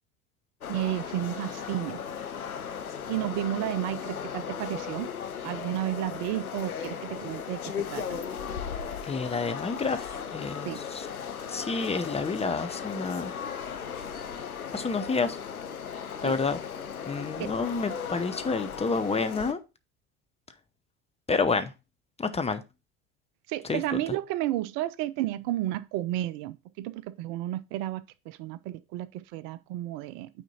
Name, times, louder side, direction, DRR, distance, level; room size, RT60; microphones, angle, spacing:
sound 1, 0.6-19.5, left 7 dB, 90° left, 0.9 m, -37 dB
voice 1, 0.7-2.5 3.1-5.1 5.4-7.6 7.9-8.2 10.7-10.8 16.2-16.3 17.4-17.5 23.5-30.3, right 14 dB, 50° right, 0.6 m, -32 dB
voice 2, 9.0-11.1 11.5-13.3 14.7-15.4 16.2-16.6 17.1-19.6 21.3-21.7 22.2-22.6 23.7-24.0, left 4 dB, 15° left, 0.8 m, -29 dB
9.0 x 4.3 x 4.2 m
figure-of-eight pair, 75°, 42 cm